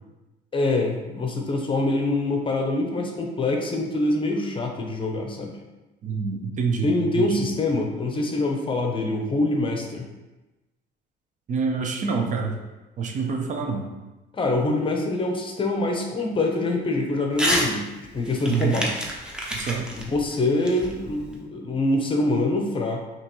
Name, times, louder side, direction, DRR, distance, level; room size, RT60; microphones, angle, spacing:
voice 1, 0.5-5.6 6.8-10.1 14.3-17.9 18.1-19.0 19.9-23.0, left 2 dB, 30° left, 2 dB, 0.7 m, -25 dB
voice 2, 6.0-7.4 11.5-12.5 13.0-13.9 18.5-18.8 19.5-19.9, right 5 dB, 45° right, 2 dB, 0.7 m, -26 dB
Crumpling crinkling / Tearing, 17.3-17.7 18.0-21.4, equal, 5° right, 0.8 m, -28 dB
5.7 x 3.0 x 3.0 m, 1.1 s
cardioid pair, 110°, 17 cm